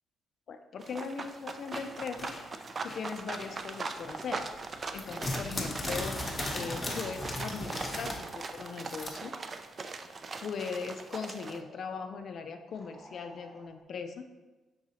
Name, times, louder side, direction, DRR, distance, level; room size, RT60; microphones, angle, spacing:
voice 1, 0.5-2.3 2.8-4.5 4.9-6.2 6.5-9.4 10.4-14.2, left 5 dB, 60° left, 6 dB, 0.3 m, -39 dB
sound 1, 0.8-11.6, right 4 dB, 40° right, 0.3 m, -40 dB
sound 2, 1.7-3.8 4.1-9.1, left 1 dB, 20° left, 0.9 m, -37 dB
sound 3, 5.7-9.7 11.1-12.2 12.7-13.7, equal, 5° right, 1.0 m, -53 dB
4.8 x 3.8 x 2.8 m, 1.2 s
cardioid pair, 90°, 0 cm